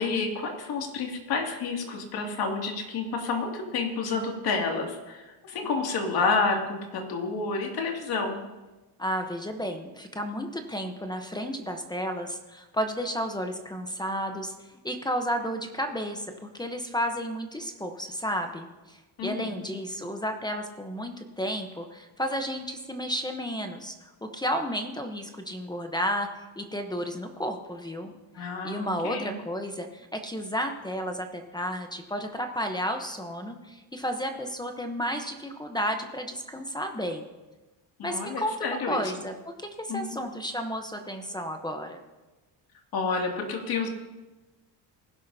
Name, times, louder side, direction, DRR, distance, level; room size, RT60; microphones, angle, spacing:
voice 1, 0.0-8.4 19.2-19.5 28.3-29.4 38.0-39.0 39.9-40.1 42.9-43.9, left 4 dB, 55° left, 1 dB, 2.5 m, -29 dB
voice 2, 9.0-16.3 16.6-23.9 24.2-26.3 26.6-28.1 28.4-37.3 38.0-42.0, equal, 10° left, 5 dB, 0.9 m, -32 dB
20.0 x 11.0 x 2.8 m, 1.1 s
cardioid pair, 130°, 43 cm